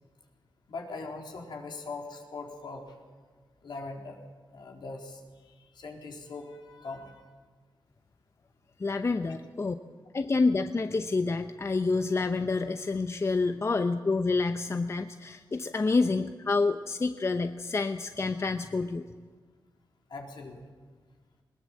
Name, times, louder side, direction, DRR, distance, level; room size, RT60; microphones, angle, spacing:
voice 1, 0.7-3.0 3.6-4.2 4.5-5.2 5.6-7.2 20.1-20.6, left 3 dB, 70° left, 1 dB, 3.8 m, -41 dB
voice 2, 8.8-9.7 10.1-19.0, left 3 dB, 35° left, 8 dB, 0.8 m, -28 dB
20.5 x 19.5 x 7.6 m, 1.5 s
wide cardioid pair, 90°, 8 cm